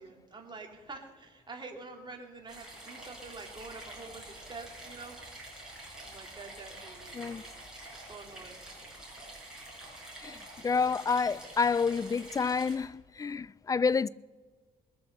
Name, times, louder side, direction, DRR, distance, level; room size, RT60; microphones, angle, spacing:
voice 1, 0.0-5.2 6.0-8.6, right 3 dB, 30° right, 2.6 m, -47 dB
sound 1, 2.5-12.8, right 1 dB, 5° right, 6.0 m, -47 dB
voice 2, 10.2-14.1, left 5 dB, 20° left, 0.3 m, -29 dB
20.5 x 7.7 x 6.8 m
cardioid pair, 110°, 16 cm